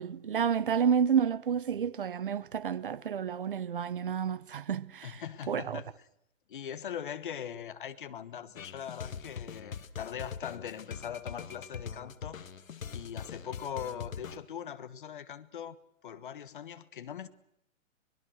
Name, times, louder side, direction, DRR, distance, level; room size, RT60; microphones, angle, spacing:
voice 1, 0.0-5.2 5.5-5.8, right 7 dB, 40° right, 0.9 m, -30 dB
voice 2, 5.0-5.9 6.5-12.4 12.9-15.8 16.0-17.3, left 9 dB, 40° left, 1.4 m, -41 dB
sound 1, 8.6-14.4, left 7 dB, 75° left, 1.9 m, -42 dB
24.5 x 21.5 x 6.4 m
hypercardioid pair, 175°, 41 cm